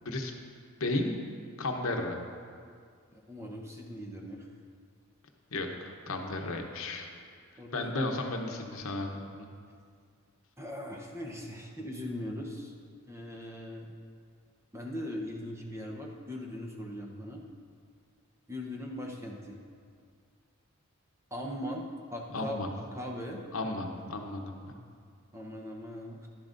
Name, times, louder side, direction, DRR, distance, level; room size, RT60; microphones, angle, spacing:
voice 1, 0.0-0.3 0.8-1.2 1.6-2.2 5.5-7.1 7.7-9.5 22.3-22.7 23.5-24.7, left 2 dB, 70° left, 3 dB, 0.9 m, -34 dB
voice 2, 3.1-4.5 7.6-7.8 10.6-12.7 13.1-13.9 14.7-17.4 18.5-19.6 21.3-21.8 22.1-23.4 25.3-26.3, left 1 dB, 15° right, 0 dB, 0.8 m, -40 dB
11.5 x 11.0 x 2.6 m, 2.1 s
head